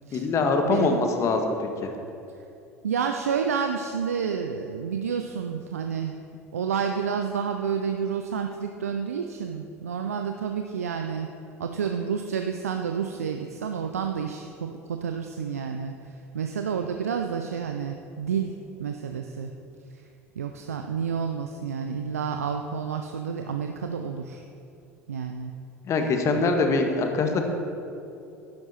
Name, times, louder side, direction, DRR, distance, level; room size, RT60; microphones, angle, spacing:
voice 1, 0.1-1.9 25.8-27.5, left 3 dB, 40° left, 4 dB, 1.4 m, -24 dB
voice 2, 0.7-1.0 2.8-6.2 6.5-11.3 11.6-19.5 19.9-20.0 20.4-24.4 25.1-25.5, right 6 dB, 80° right, 5 dB, 0.5 m, -30 dB
11.5 x 10.5 x 4.3 m, 2.7 s
figure-of-eight pair, 70°, 8 cm